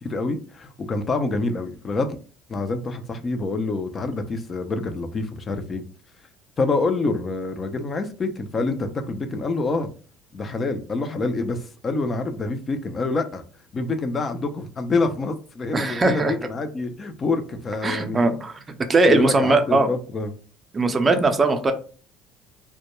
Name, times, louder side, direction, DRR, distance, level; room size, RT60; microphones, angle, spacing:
voice 1, 0.0-2.2 2.5-5.8 6.6-9.9 10.3-13.4 13.7-18.3 19.1-20.3, left 3 dB, 35° left, 0.4 m, -26 dB
voice 2, 15.7-16.3 17.8-18.6 18.9-19.9 20.7-21.7, right 3 dB, 30° right, 0.5 m, -19 dB
2.1 x 2.1 x 3.0 m
hypercardioid pair, 75°, 0 cm